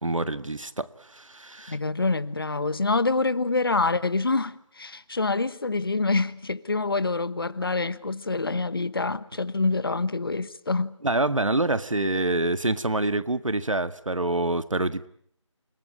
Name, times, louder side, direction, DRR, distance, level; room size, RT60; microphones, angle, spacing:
voice 1, 0.0-1.8 11.0-15.1, right 2 dB, 80° right, 1.7 m, -26 dB
voice 2, 1.7-10.9, left 3 dB, 45° left, 1.2 m, -26 dB
29.0 x 20.0 x 8.6 m
figure-of-eight pair, 170°, 16 cm